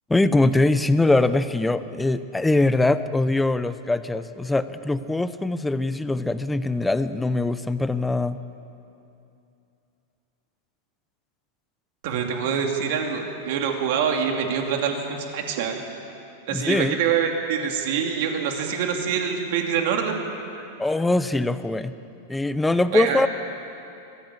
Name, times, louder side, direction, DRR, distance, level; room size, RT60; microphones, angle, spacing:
voice 1, 0.1-8.4 16.5-17.0 20.8-21.9 22.3-23.3, left 2 dB, 5° left, 13 dB, 0.5 m, -22 dB
voice 2, 12.0-15.8 16.5-20.2 22.9-23.2, right 7 dB, 50° right, 3 dB, 2.7 m, -25 dB
22.5 x 15.0 x 8.7 m, 2.7 s
supercardioid pair, 175°, 0 cm